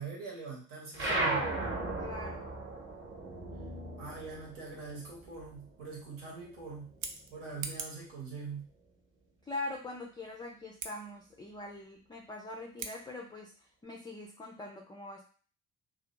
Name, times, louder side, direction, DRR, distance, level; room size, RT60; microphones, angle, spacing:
voice 1, 0.0-1.5 4.0-6.9 7.3-8.7, right 4 dB, 75° right, -3 dB, 1.1 m, -43 dB
sound 1, 0.9-5.8 6.1-7.6, right 2 dB, 25° right, 0.9 m, -36 dB
voice 2, 2.0-2.5 9.4-15.3, left 2 dB, 10° left, 0 dB, 0.3 m, -43 dB
Scissors, 6.8-8.1 10.7-10.9 12.7-13.0, right 5 dB, 50° right, 0.5 m, -42 dB
2.5 x 2.1 x 2.9 m, 0.41 s
figure-of-eight pair, 40°, 45 cm